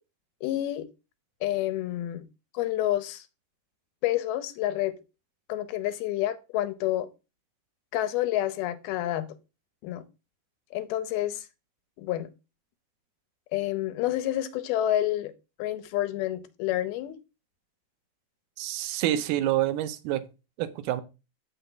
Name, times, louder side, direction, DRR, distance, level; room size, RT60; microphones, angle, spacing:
voice 1, 0.4-0.9 1.4-2.3 2.5-3.2 4.0-4.9 5.5-7.1 7.9-9.3 9.8-10.0 10.7-11.4 12.0-12.3 13.5-15.3 15.6-17.2, left 13 dB, 85° left, 2.6 m, -28 dB
voice 2, 18.6-20.3 20.6-21.0, right 13 dB, 85° right, 2.6 m, -27 dB
8.0 x 6.2 x 3.8 m
omnidirectional pair, 4.4 m